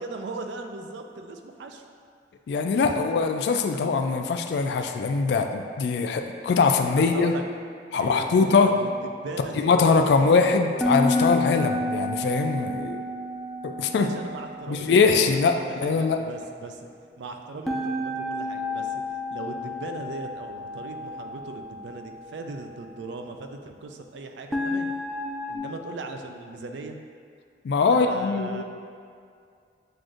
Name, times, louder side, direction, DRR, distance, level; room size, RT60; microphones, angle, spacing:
voice 1, 0.0-1.8 7.0-7.4 7.9-8.9 9.2-10.6 13.9-16.8 17.2-19.0 19.3-24.9 25.5-27.0 27.9-28.6, right 3 dB, 90° right, 4 dB, 0.4 m, -38 dB
voice 2, 2.5-7.3 7.9-8.7 9.5-13.0 13.6-14.1 14.7-16.2 27.6-28.6, left 4 dB, 75° left, 5 dB, 0.3 m, -22 dB
sound 1, 10.8-14.9 17.7-21.8 24.5-25.6, left 2 dB, ahead, 0.4 m, -30 dB
7.6 x 2.5 x 2.4 m, 2.2 s
head